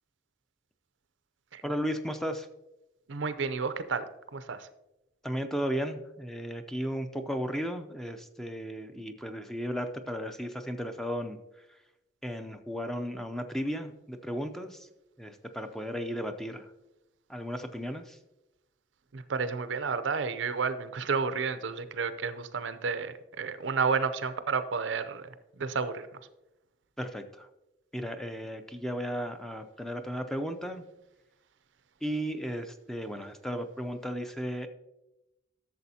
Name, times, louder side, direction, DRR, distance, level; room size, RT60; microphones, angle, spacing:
voice 1, 1.6-2.5 5.2-11.4 11.7-11.8 12.2-14.9 15.2-16.7 17.3-18.2 27.0-27.5 27.9-30.8 32.0-34.7, equal, ahead, 7 dB, 0.5 m, -35 dB
voice 2, 3.1-4.0 4.3-4.7 19.1-25.3 25.6-26.1, right 5 dB, 70° right, 12 dB, 0.5 m, -31 dB
12.0 x 6.9 x 2.8 m, 0.94 s
head